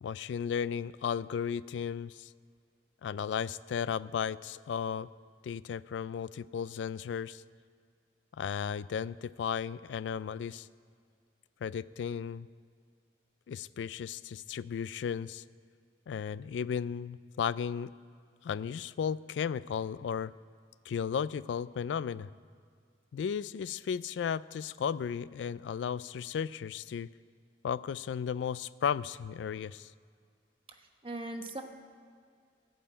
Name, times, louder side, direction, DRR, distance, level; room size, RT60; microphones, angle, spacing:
voice 1, 0.0-2.3 3.0-5.1 5.4-7.4 8.4-10.7 11.6-12.5 13.5-15.4 16.1-17.9 18.4-20.3 20.9-22.3 23.1-27.1 27.6-29.9, left 7 dB, 90° left, 18 dB, 0.3 m, -35 dB
voice 2, 30.7-31.6, right 2 dB, 30° right, 4 dB, 1.0 m, -40 dB
16.5 x 5.6 x 8.7 m, 2.1 s
head